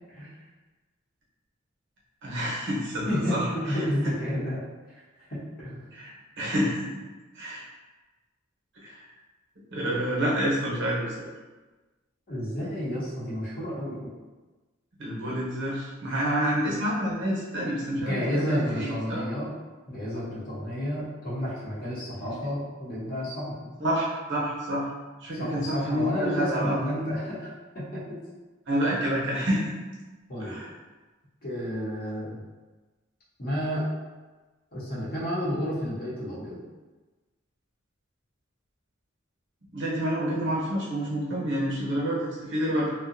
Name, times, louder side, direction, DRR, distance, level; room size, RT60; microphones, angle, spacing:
voice 1, 2.2-3.9 5.9-6.1 6.4-6.9 7.3-7.6 8.8-9.0 9.7-11.3 15.0-19.2 22.1-22.5 23.8-24.9 25.2-26.8 28.7-29.7 30.4-30.7 39.7-42.9, equal, 65° right, -5 dB, 0.8 m, -28 dB
voice 2, 3.1-4.6 5.3-5.8 12.3-14.1 18.0-19.5 19.9-23.7 25.3-27.5 27.7-28.2 30.3-30.6 31.4-32.4 33.4-33.9 34.7-36.6, equal, 50° left, -7 dB, 0.9 m, -31 dB
2.6 x 2.2 x 2.5 m, 1.2 s
head